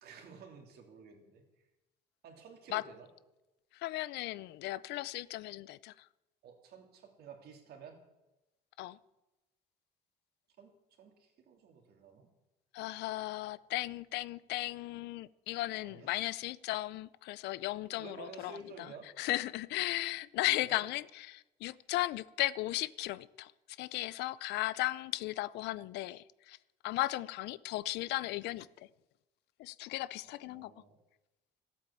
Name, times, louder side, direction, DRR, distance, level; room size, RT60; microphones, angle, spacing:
voice 1, 0.0-1.4 2.2-3.1 6.4-8.0 10.6-10.7 11.0-12.3 15.8-16.1 18.0-19.1 20.6-20.9 30.2-31.0, right 5 dB, 70° right, 3.1 m, -52 dB
voice 2, 3.7-6.1 8.8-9.0 12.7-18.9 19.2-23.5 23.8-26.6 26.8-28.9 29.6-30.7, left 17 dB, 85° left, 0.5 m, -36 dB
13.5 x 8.8 x 8.4 m
cardioid pair, 110°, 17 cm